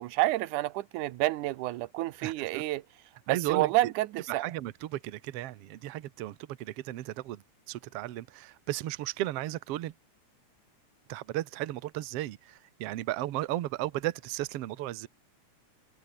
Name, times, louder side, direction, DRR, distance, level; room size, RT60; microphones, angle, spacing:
voice 1, 0.0-2.8 3.3-4.5, right 17 dB, 90° right, 2.3 m, -29 dB
voice 2, 2.2-2.6 3.3-3.9 4.3-9.9 11.1-15.1, right 15 dB, 65° right, 1.8 m, -35 dB
omnidirectional pair, 3.4 m